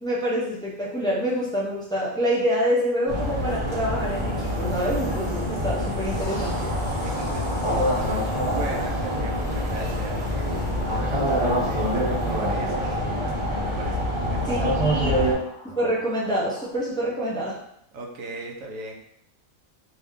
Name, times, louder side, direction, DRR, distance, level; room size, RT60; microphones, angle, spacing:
voice 1, 0.0-6.7 14.5-15.2 15.6-17.6, equal, 5° left, -6 dB, 0.5 m, -26 dB
sound 1, 3.1-15.3, equal, 25° right, 0.8 m, -26 dB
sound 2, 6.2-16.7, left 1 dB, 25° left, 1.1 m, -40 dB
voice 2, 7.0-13.2 13.6-15.0 17.9-19.0, right 2 dB, 75° right, 1 dB, 1.0 m, -38 dB
3.3 x 2.7 x 3.6 m, 0.74 s
omnidirectional pair, 1.4 m